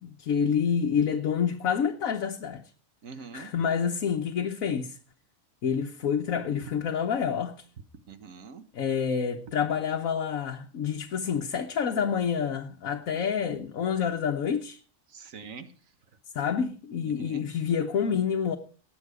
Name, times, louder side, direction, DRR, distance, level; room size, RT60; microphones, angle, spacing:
voice 1, 0.0-2.6 3.3-5.0 5.6-7.6 8.7-14.8 16.3-18.6, left 7 dB, 80° left, 1.4 m, -28 dB
voice 2, 3.0-3.5 8.1-8.6 15.1-15.7 17.0-17.5, right 5 dB, 75° right, 1.6 m, -44 dB
19.0 x 8.0 x 4.9 m
omnidirectional pair, 1.4 m